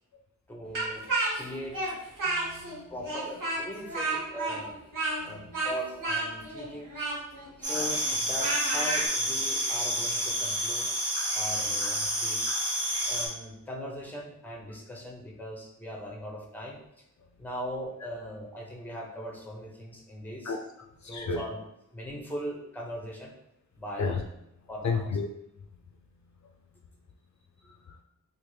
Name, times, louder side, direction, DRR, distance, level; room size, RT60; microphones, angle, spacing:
voice 1, 0.5-1.1 1.3-2.0 2.9-4.8 5.2-6.9 7.6-11.1 11.3-12.6 13.1-17.0 17.4-20.5 21.1-21.6 21.9-23.3 23.8-24.1 24.7-25.1, equal, 5° left, -1 dB, 0.8 m, -39 dB
Speech, 0.7-2.8 3.0-9.1, right 2 dB, 75° right, 1.1 m, -31 dB
voice 2, 2.2-3.3 5.2-5.6 7.3-7.7 11.6-11.7 12.9-13.0 17.2-17.3 20.4-20.6 20.9-21.5 24.0-24.2 24.8-25.3 25.6-25.7 26.4-26.5 27.6-28.0, left 4 dB, 60° left, 1 dB, 0.4 m, -34 dB
sound 1, 7.6-13.3, equal, 50° right, 1.0 m, -29 dB
3.6 x 2.5 x 3.1 m, 0.81 s
wide cardioid pair, 60°, 32 cm